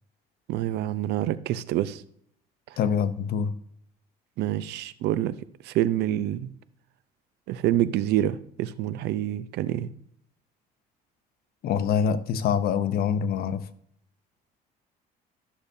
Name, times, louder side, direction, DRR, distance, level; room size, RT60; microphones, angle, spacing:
voice 1, 0.5-2.0 2.7-2.8 4.4-5.4 5.6-6.5 7.5-9.9, right 13 dB, 80° right, 0.6 m, -27 dB
voice 2, 2.8-3.5 11.6-13.6, left 7 dB, 65° left, 0.7 m, -25 dB
13.0 x 6.8 x 2.7 m
cardioid pair, 110°, 17 cm